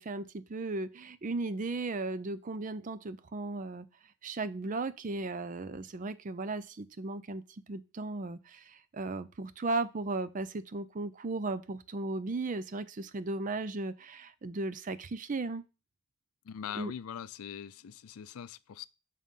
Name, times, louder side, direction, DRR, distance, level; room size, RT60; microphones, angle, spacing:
voice 1, 0.0-3.9 4.2-7.4 7.7-15.6 16.8-16.9, right 3 dB, 35° right, 0.5 m, -36 dB
voice 2, 16.4-18.9, left 8 dB, 80° left, 0.4 m, -42 dB
7.5 x 3.7 x 5.4 m
head